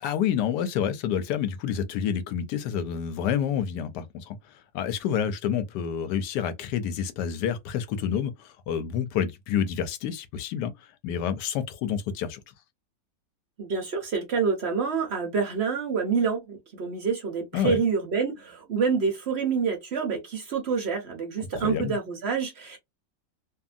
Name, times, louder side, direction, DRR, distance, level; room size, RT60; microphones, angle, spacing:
voice 1, 0.0-4.4 4.7-12.4 17.5-17.8 21.5-22.0, left 8 dB, 70° left, 1.1 m, -28 dB
voice 2, 13.6-22.8, right 5 dB, 65° right, 0.6 m, -27 dB
2.7 x 2.6 x 2.4 m
omnidirectional pair, 2.0 m